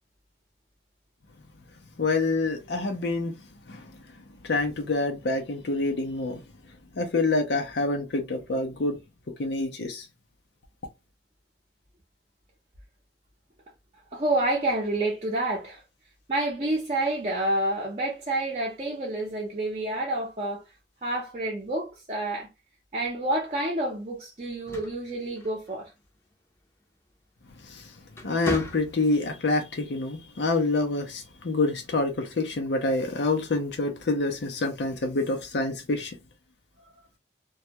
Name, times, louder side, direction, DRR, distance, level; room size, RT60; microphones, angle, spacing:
voice 1, 2.0-3.3 3.7-3.8 4.4-6.4 7.0-9.0 9.4-10.0 27.7-27.9 28.2-36.2, left 2 dB, 75° left, 0.6 m, -27 dB
voice 2, 14.1-15.8 16.3-20.6 21.0-22.5 22.9-25.9, right 1 dB, 35° right, 0.6 m, -28 dB
sound 1, 24.4-26.0 27.4-27.7 28.1-29.3, left 1 dB, 15° left, 0.6 m, -35 dB
2.2 x 2.1 x 2.7 m
head